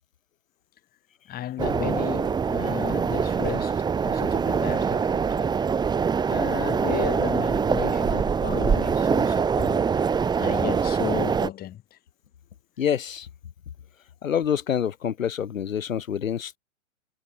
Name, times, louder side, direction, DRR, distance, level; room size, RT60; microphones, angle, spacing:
voice 1, 1.3-5.5 6.3-9.9 10.3-12.0, left 12 dB, 25° left, 3.7 m, -34 dB
sound 1, 1.6-11.5, right 6 dB, 10° right, 1.5 m, -24 dB
voice 2, 12.8-13.3 14.2-16.6, left 8 dB, 80° left, 2.6 m, -26 dB
hypercardioid pair, 130°, 40 cm